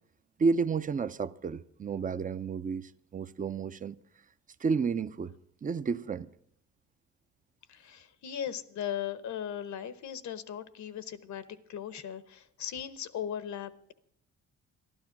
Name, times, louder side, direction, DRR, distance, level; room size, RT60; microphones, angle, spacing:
voice 1, 0.4-4.0 4.6-5.3 5.6-6.3, right 5 dB, 25° right, 0.6 m, -31 dB
voice 2, 7.7-11.4 11.7-13.9, left 9 dB, 70° left, 1.0 m, -38 dB
13.0 x 12.0 x 6.0 m
cardioid pair, 90°, 30 cm